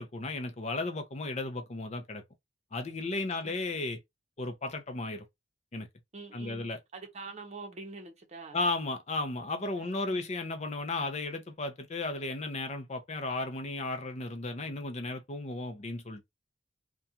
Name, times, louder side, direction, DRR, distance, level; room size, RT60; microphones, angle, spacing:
voice 1, 0.0-2.2 2.7-4.0 4.4-5.3 5.7-5.9 6.3-6.8 8.5-16.2, left 2 dB, 35° left, 0.6 m, -34 dB
voice 2, 6.1-8.6 9.8-10.2, right 3 dB, 40° right, 0.7 m, -45 dB
2.4 x 2.3 x 2.7 m
head